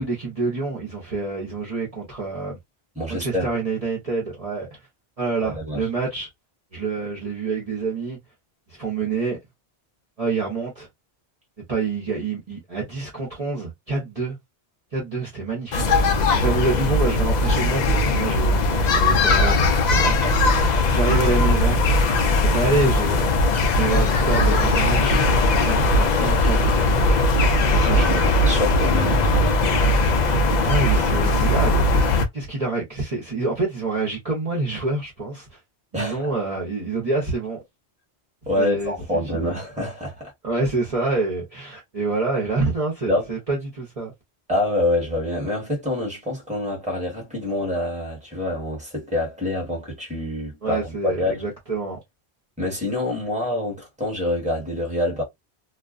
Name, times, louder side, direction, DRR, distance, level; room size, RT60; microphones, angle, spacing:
voice 1, 0.0-2.6 3.1-4.8 5.2-6.3 6.7-8.2 8.7-9.4 10.2-10.9 11.7-14.4 14.9-16.0 16.3-20.1 20.9-21.8 22.4-23.3 23.7-25.2 25.6-27.2 27.7-28.4 30.6-35.6 35.9-37.6 38.6-39.5 40.4-44.1 50.6-52.0, right 3 dB, 40° right, 0.8 m, -27 dB
voice 2, 3.0-3.5 5.4-5.8 20.2-20.3 27.9-30.1 35.9-36.3 38.5-40.3 43.1-43.3 44.5-51.5 52.6-55.2, left 1 dB, 5° right, 1.1 m, -26 dB
sound 1, 15.7-32.3, left 2 dB, 55° left, 0.5 m, -19 dB
2.4 x 2.3 x 2.4 m
omnidirectional pair, 1.1 m